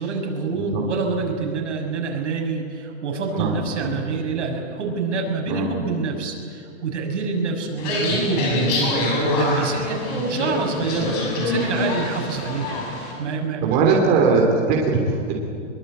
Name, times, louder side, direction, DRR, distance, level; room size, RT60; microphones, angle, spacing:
voice 1, 0.0-14.1, right 4 dB, 75° right, 1 dB, 6.3 m, -27 dB
sound 1, 7.8-13.1, left 2 dB, 35° left, 7.4 m, -25 dB
voice 2, 13.6-15.3, right 4 dB, 25° right, -1 dB, 3.1 m, -20 dB
24.0 x 22.5 x 8.7 m, 2.3 s
supercardioid pair, 175°, 36 cm